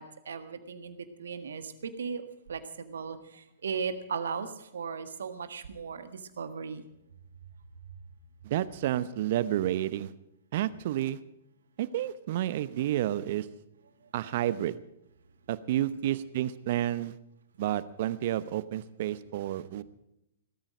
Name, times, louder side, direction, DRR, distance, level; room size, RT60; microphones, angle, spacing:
voice 1, 0.0-2.2 2.5-4.5 4.7-6.8, right 6 dB, 65° right, 10 dB, 1.6 m, -37 dB
voice 2, 8.4-10.1 10.5-11.2 11.8-13.5 14.1-14.7 15.5-17.1 17.6-19.8, right 12 dB, 50° right, 16 dB, 0.9 m, -30 dB
18.5 x 13.0 x 5.1 m, 0.84 s
figure-of-eight pair, 110°, 0 cm